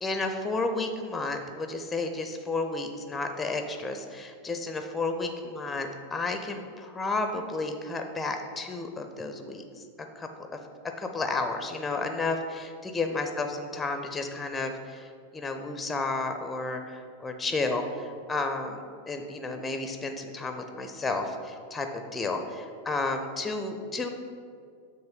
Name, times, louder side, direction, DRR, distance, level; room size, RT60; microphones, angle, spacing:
voice 1, 0.0-9.6 10.2-10.6 11.0-24.1, left 3 dB, 10° left, 6 dB, 0.5 m, -32 dB
7.1 x 3.1 x 5.4 m, 2.2 s
figure-of-eight pair, 90°, 0 cm